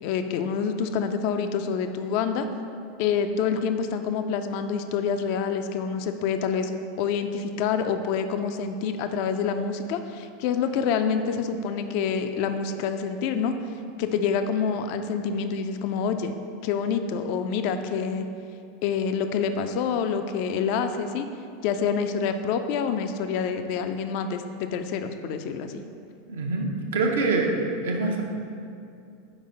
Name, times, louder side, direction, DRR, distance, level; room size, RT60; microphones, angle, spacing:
voice 1, 0.0-2.5 3.0-6.7 7.0-13.6 14.0-16.3 16.6-18.3 18.8-21.3 21.6-25.8, left 6 dB, 55° left, 8 dB, 0.3 m, -27 dB
voice 2, 26.3-27.5 27.8-28.2, right 3 dB, 70° right, 1 dB, 0.7 m, -25 dB
4.8 x 4.0 x 5.1 m, 2.5 s
figure-of-eight pair, 85°, 0 cm